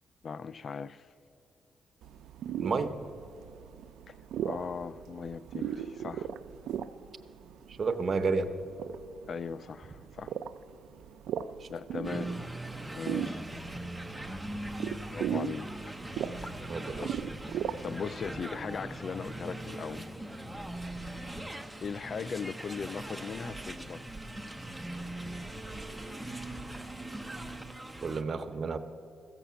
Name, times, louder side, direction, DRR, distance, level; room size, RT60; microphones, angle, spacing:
voice 1, 0.2-1.1 4.1-4.2 4.4-6.3 9.3-10.3 11.7-12.4 12.9-13.4 15.1-16.0 17.0-17.1 17.8-20.1 21.8-24.0, left 6 dB, 50° left, 0.3 m, -38 dB
sound 1, 2.0-18.1, right 9 dB, 80° right, 0.4 m, -38 dB
voice 2, 2.6-2.9 7.7-8.5 11.6-11.7 16.7-17.2 28.0-28.8, right 4 dB, 45° right, 0.8 m, -31 dB
sound 2, 12.0-28.2, right 1 dB, 5° right, 0.7 m, -40 dB
14.5 x 7.3 x 6.9 m
cardioid pair, 100°, 0 cm